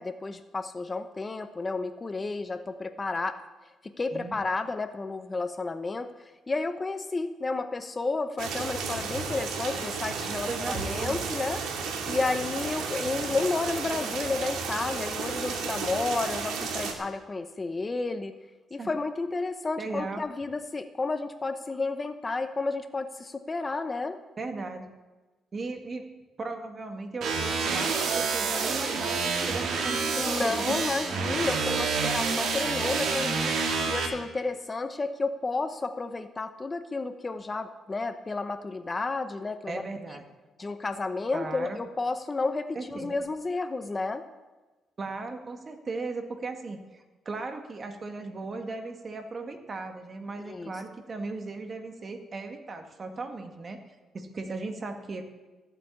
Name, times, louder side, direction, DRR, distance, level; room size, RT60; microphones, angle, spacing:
voice 1, 0.0-3.4 3.8-6.1 6.5-11.6 12.1-18.3 18.7-24.2 30.2-33.5 33.9-39.8 40.6-44.2 50.4-50.7, left 3 dB, 25° left, 10 dB, 0.8 m, -31 dB
sound 1, 8.4-16.9, right 5 dB, 90° right, 2.3 m, -33 dB
voice 2, 10.5-11.2 18.8-18.9 19.8-20.3 24.4-24.9 25.5-26.1 26.4-30.8 39.7-40.2 41.3-41.8 42.8-43.2 45.0-53.8 54.1-55.2, right 3 dB, 40° right, 5 dB, 1.9 m, -37 dB
sound 2, 27.2-34.1, right 4 dB, 70° right, 2.4 m, -28 dB
15.0 x 8.2 x 8.6 m, 1.2 s
cardioid pair, 90°, 0 cm